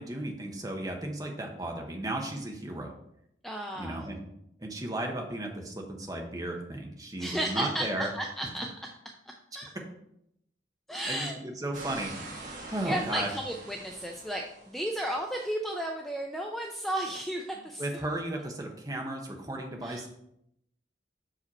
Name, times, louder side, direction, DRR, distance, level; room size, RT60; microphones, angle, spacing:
voice 1, 0.0-3.0 3.7-4.2 4.6-8.1 11.1-13.3 17.8-20.1, right 1 dB, 20° right, 2 dB, 1.0 m, -35 dB
voice 2, 3.4-4.1 7.2-8.7 9.6-9.7 10.9-11.4 12.8-17.9 19.8-20.1, right 1 dB, ahead, 1 dB, 0.4 m, -33 dB
sound 1, 11.7-15.0, right 2 dB, 50° right, 1.2 m, -44 dB
6.3 x 5.0 x 4.2 m, 0.77 s
head